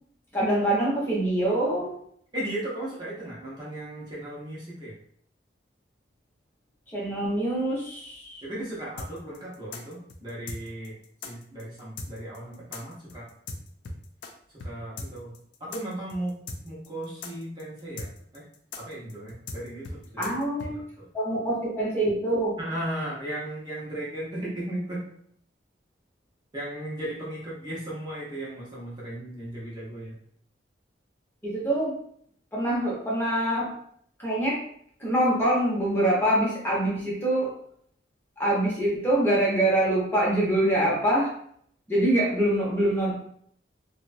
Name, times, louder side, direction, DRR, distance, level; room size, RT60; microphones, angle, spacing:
voice 1, 0.3-1.9 6.9-8.4 20.2-20.7 21.1-22.6 31.4-31.9 32.5-33.7 34.2-34.6 35.0-37.5 38.4-41.3 41.9-43.1, right 1 dB, 15° left, -6 dB, 0.8 m, -24 dB
voice 2, 2.3-4.9 8.4-10.9 11.2-13.3 14.6-16.4 16.6-18.5 18.8-20.3 20.7-21.1 22.6-25.1 26.5-30.1, right 1 dB, 25° right, -6 dB, 0.6 m, -36 dB
sound 1, 9.0-14.3 14.6-14.7 15.0-20.7, left 3 dB, 75° left, 0.4 m, -38 dB
2.8 x 2.1 x 2.5 m, 0.66 s
head